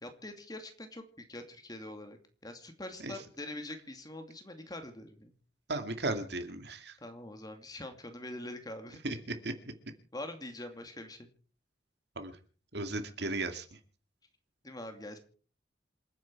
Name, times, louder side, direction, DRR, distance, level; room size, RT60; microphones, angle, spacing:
voice 1, 0.0-5.3 7.0-9.0 10.1-11.3 14.6-15.2, left 1 dB, 20° left, 6 dB, 2.5 m, -44 dB
voice 2, 5.7-7.0 9.0-9.5 12.2-12.3 12.7-13.7, right 2 dB, 65° right, 7 dB, 2.3 m, -35 dB
27.5 x 9.5 x 4.7 m, 0.40 s
head